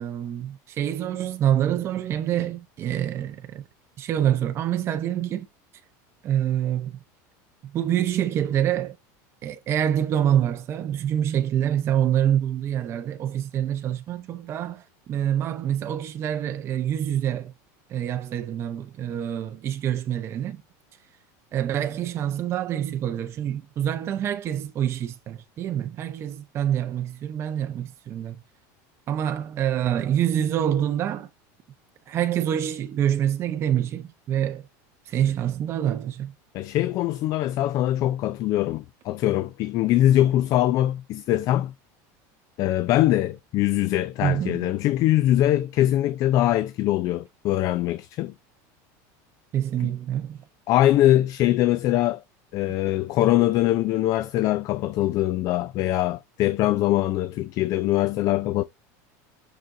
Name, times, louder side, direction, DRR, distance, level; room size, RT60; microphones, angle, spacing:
voice 1, 0.0-3.6 4.0-5.5 6.2-7.0 7.7-9.0 9.4-17.5 17.9-20.6 21.5-28.4 29.1-31.3 32.1-34.6 35.1-36.3 44.2-44.7 49.5-50.4, right 10 dB, 30° right, 0.5 m, -26 dB
voice 2, 36.5-41.7 42.6-48.3 50.7-52.2 52.5-58.6, left 14 dB, 40° left, 0.3 m, -22 dB
6.4 x 5.9 x 2.5 m
supercardioid pair, 150°, 9 cm